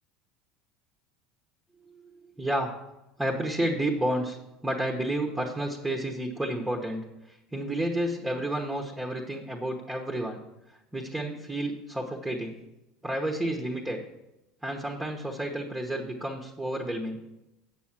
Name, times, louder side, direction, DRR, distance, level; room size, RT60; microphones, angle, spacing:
voice 1, 1.9-2.7 3.2-4.4 4.6-10.4 10.9-12.5 13.0-14.0 14.6-17.2, right 1 dB, 10° right, 1 dB, 1.1 m, -31 dB
7.8 x 6.2 x 6.0 m, 0.95 s
supercardioid pair, 95°, 0 cm